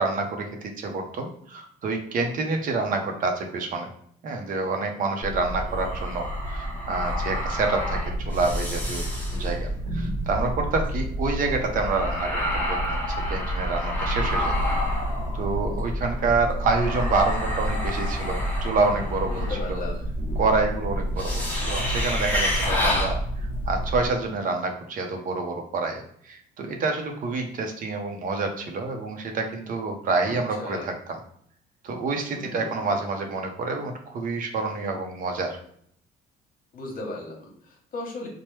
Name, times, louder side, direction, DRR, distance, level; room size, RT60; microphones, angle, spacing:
voice 1, 0.0-3.9 4.2-9.1 9.3-14.5 15.3-19.8 20.4-30.9 31.8-35.6, right 3 dB, 55° right, 3 dB, 0.6 m, -28 dB
sound 1, 5.2-24.1, equal, 10° left, 0.9 m, -28 dB
voice 2, 19.3-20.0 30.2-30.9 32.3-32.9 36.7-38.3, left 2 dB, 55° left, 0 dB, 1.0 m, -36 dB
3.1 x 2.1 x 3.2 m, 0.66 s
cardioid pair, 110°, 17 cm